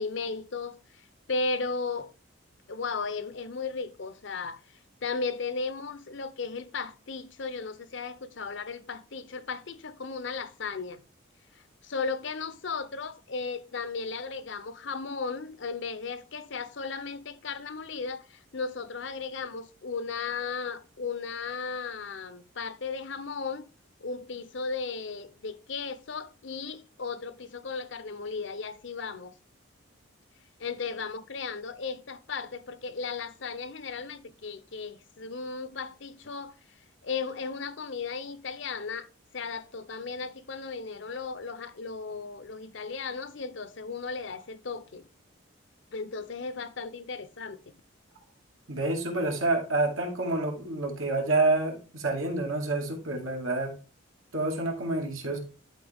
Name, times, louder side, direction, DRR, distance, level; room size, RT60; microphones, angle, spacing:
voice 1, 0.0-2.1 2.7-11.0 11.5-23.6 24.0-29.3 30.6-36.6 37.0-39.1 39.3-45.0 45.9-47.6, left 4 dB, 60° left, 0.7 m, -35 dB
voice 2, 48.7-53.7 54.3-55.4, right 2 dB, 75° right, 2.3 m, -28 dB
11.5 x 4.2 x 3.5 m
head